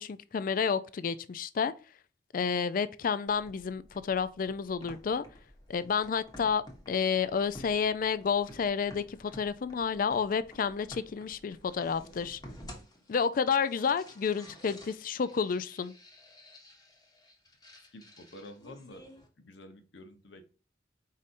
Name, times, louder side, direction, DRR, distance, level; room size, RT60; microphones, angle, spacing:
voice 1, 0.0-1.7 2.3-5.2 5.7-12.4 13.1-15.9, left 6 dB, 50° left, 0.4 m, -30 dB
sound 1, 3.3-19.3, left 1 dB, 20° left, 1.1 m, -52 dB
voice 2, 17.8-19.1 19.4-20.5, left 1 dB, 75° left, 0.9 m, -50 dB
4.9 x 4.1 x 2.5 m
head